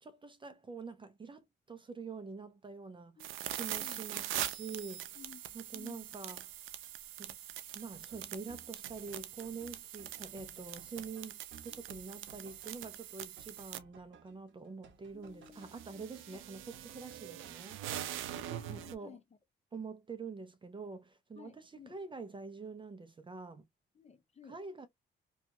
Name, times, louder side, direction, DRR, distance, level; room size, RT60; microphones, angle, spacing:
voice 1, 0.0-5.2 5.5-6.5 7.2-7.4 7.7-17.8 18.7-19.2 19.7-23.6 24.5-24.9, right 4 dB, 25° right, 0.5 m, -46 dB
voice 2, 3.2-4.2 5.1-6.1 15.1-16.4 18.3-19.2 21.3-22.0 23.9-24.6, left 7 dB, 35° left, 0.8 m, -56 dB
sound 1, 3.2-13.8 15.3-18.9, right 12 dB, 90° right, 0.5 m, -43 dB
sound 2, 7.8-17.5, right 5 dB, 70° right, 0.8 m, -59 dB
2.8 x 2.3 x 2.6 m
cardioid pair, 90°, 20 cm